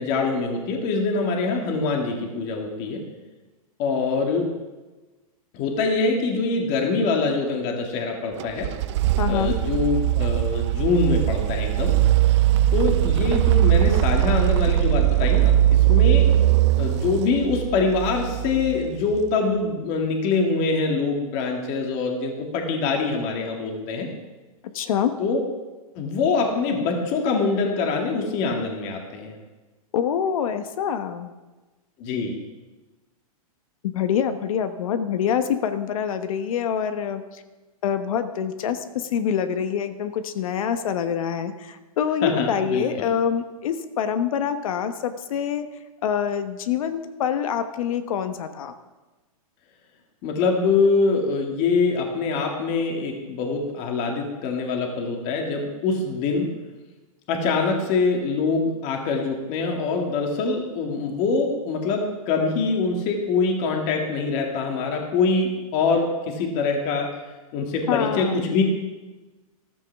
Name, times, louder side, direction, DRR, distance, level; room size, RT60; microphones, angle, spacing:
voice 1, 0.0-3.0 3.8-4.5 5.5-8.7 9.3-11.9 12.7-16.3 16.8-24.1 25.2-25.4 26.0-29.3 32.0-32.3 42.2-42.8 50.2-56.5 57.3-67.1 67.5-68.6, left 4 dB, 40° left, 1 dB, 2.3 m, -24 dB
sound 1, 8.4-19.2, right 13 dB, 50° right, 0.4 m, -20 dB
voice 2, 9.2-9.5 24.7-25.1 29.9-31.3 33.8-37.4 37.8-45.7 46.0-48.7 67.9-68.6, left 8 dB, 65° left, 9 dB, 1.1 m, -25 dB
14.0 x 13.5 x 3.5 m, 1.2 s
hypercardioid pair, 135°, 19 cm